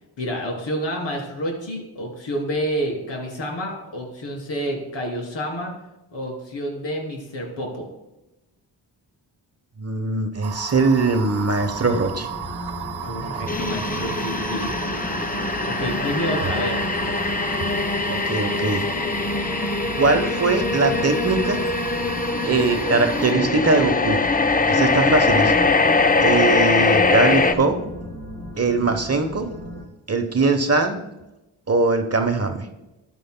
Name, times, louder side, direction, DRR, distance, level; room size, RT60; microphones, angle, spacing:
voice 1, 0.2-5.7 6.1-7.9 13.0-14.7 15.6-16.8, equal, 65° left, 0 dB, 3.1 m, -29 dB
voice 2, 9.8-12.3 18.1-18.9 19.9-21.6 22.4-24.2 24.7-25.7 26.2-27.8 28.6-29.5 30.1-31.0 31.7-32.7, right 3 dB, 30° right, 7 dB, 1.0 m, -21 dB
sound 1, 10.4-23.3, right 8 dB, 55° right, 0.9 m, -34 dB
sound 2, 11.6-29.8, equal, 35° left, 2.3 m, -35 dB
sound 3, 13.5-27.5, left 3 dB, 20° left, 0.6 m, -22 dB
12.5 x 9.2 x 2.2 m, 0.97 s
supercardioid pair, 50°, 47 cm